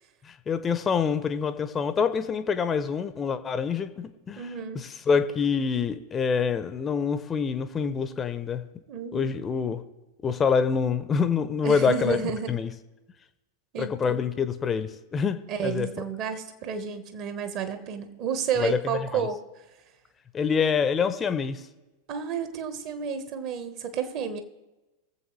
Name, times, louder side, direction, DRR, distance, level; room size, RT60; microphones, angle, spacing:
voice 1, 0.2-4.5 4.7-8.6 9.1-9.8 10.2-12.2 12.5-12.7 13.8-15.9 18.6-18.8 19.1-19.3 20.3-21.6, left 6 dB, 20° left, 11 dB, 0.7 m, -26 dB
voice 2, 4.4-4.8 8.9-9.3 11.6-12.5 13.7-14.2 15.5-19.4 22.1-24.4, right 7 dB, 40° right, 10 dB, 1.2 m, -31 dB
21.5 x 7.7 x 3.2 m, 1.1 s
figure-of-eight pair, 90°, 0 cm